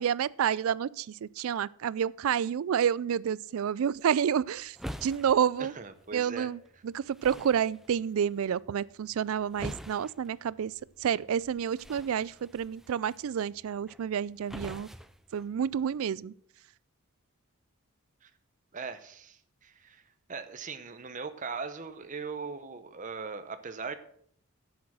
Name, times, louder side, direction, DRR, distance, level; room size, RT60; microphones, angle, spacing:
voice 1, 0.0-4.8 5.0-5.7 6.1-6.6 6.8-10.7 11.0-14.9 15.3-16.3, right 8 dB, 70° right, 0.3 m, -29 dB
sound 1, 3.9-16.0, equal, ahead, 0.4 m, -47 dB
voice 2, 5.6-6.5 18.2-18.3 18.7-23.9, right 5 dB, 35° right, 0.7 m, -40 dB
10.0 x 7.2 x 6.1 m
head